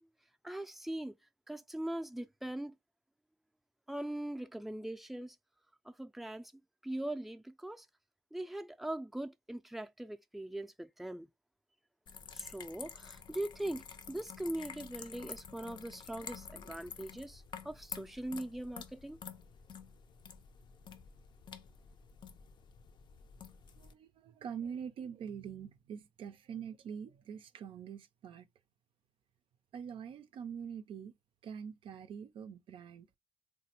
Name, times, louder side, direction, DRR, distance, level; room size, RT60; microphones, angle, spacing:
voice 1, 0.4-1.1 1.5-2.7 3.9-5.4 5.9-6.5 6.8-7.9 8.3-11.3 12.3-19.2, right 1 dB, ahead, 0.3 m, -41 dB
sound 1, 12.1-23.9, left 6 dB, 65° left, 0.4 m, -50 dB
voice 2, 23.8-28.5 29.7-31.1 31.4-33.1, right 7 dB, 80° right, 0.4 m, -44 dB
3.3 x 2.1 x 2.8 m
cardioid pair, 65°, 9 cm